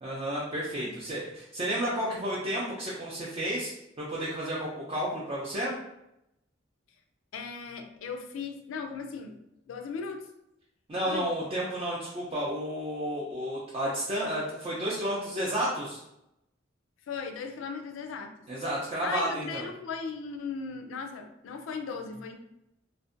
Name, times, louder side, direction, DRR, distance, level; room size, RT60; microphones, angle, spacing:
voice 1, 0.0-3.7 4.0-5.7 10.9-16.0 18.5-19.6, equal, 30° right, -6 dB, 0.4 m, -31 dB
voice 2, 7.3-9.4 9.7-10.3 10.9-11.3 17.1-18.3 19.0-22.4, left 5 dB, 80° left, 5 dB, 0.3 m, -37 dB
2.5 x 2.1 x 2.4 m, 0.84 s
head